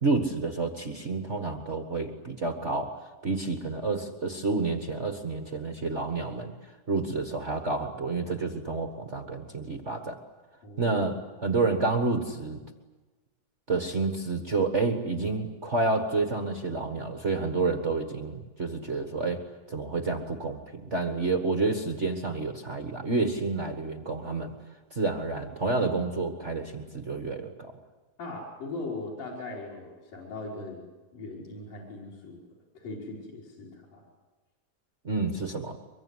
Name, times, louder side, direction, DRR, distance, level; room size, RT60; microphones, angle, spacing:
voice 1, 0.0-6.5 6.9-10.2 10.8-12.6 13.7-19.4 19.7-24.5 24.9-27.7 35.0-35.8, right 3 dB, 55° right, 6 dB, 0.7 m, -29 dB
voice 2, 10.6-11.0 28.2-30.8 31.1-32.4 32.8-34.0, left 2 dB, 70° left, -5 dB, 6.1 m, -39 dB
24.5 x 23.0 x 9.7 m, 1.2 s
omnidirectional pair, 4.0 m